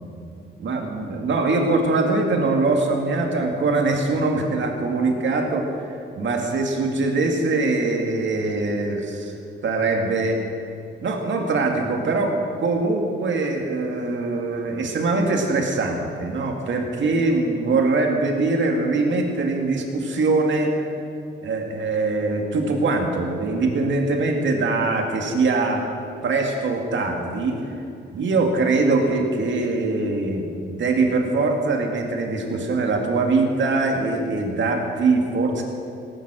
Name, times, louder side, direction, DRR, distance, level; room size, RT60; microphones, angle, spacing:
voice 1, 0.6-9.3 9.6-10.4 11.0-12.3 12.6-20.9 21.4-25.9 26.2-27.8 28.1-35.6, right 3 dB, 70° right, 2 dB, 2.1 m, -22 dB
18.0 x 9.4 x 6.3 m, 2.6 s
cardioid pair, 110°, 20 cm